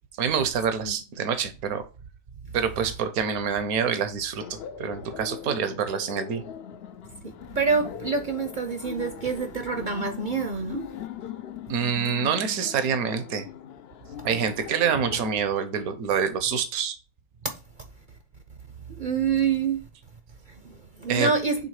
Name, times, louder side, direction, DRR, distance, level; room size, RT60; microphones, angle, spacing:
voice 1, 0.2-1.8 2.5-6.4 11.7-13.5 14.2-17.0 21.1-21.4, right 7 dB, 80° right, 1.3 m, -26 dB
Laughter, 4.4-15.3, left 9 dB, 65° left, 0.6 m, -40 dB
voice 2, 7.2-10.8 17.4-17.5 19.0-19.8 20.6-21.6, right 5 dB, 50° right, 0.6 m, -26 dB
6.8 x 3.5 x 4.8 m
omnidirectional pair, 1.5 m